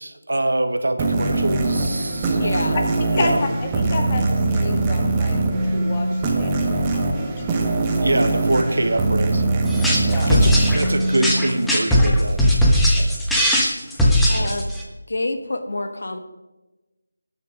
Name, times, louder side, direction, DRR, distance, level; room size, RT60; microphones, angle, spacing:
voice 1, 0.0-2.4 3.1-3.3 8.0-9.4 10.3-12.4, right 1 dB, 80° right, 8 dB, 1.4 m, -24 dB
sound 1, 1.0-12.2, right 2 dB, 20° right, 1.5 m, -22 dB
voice 2, 2.3-2.8 14.3-14.7 15.1-16.2, left 2 dB, 65° left, 8 dB, 1.3 m, -27 dB
voice 3, 3.1-7.8 10.1-10.3 13.0-13.1 14.4-14.5, left 2 dB, 30° left, 3 dB, 1.9 m, -30 dB
sound 2, 9.7-14.8, equal, ahead, 1.3 m, -18 dB
19.5 x 6.6 x 5.0 m, 1.1 s
figure-of-eight pair, 165°, 0 cm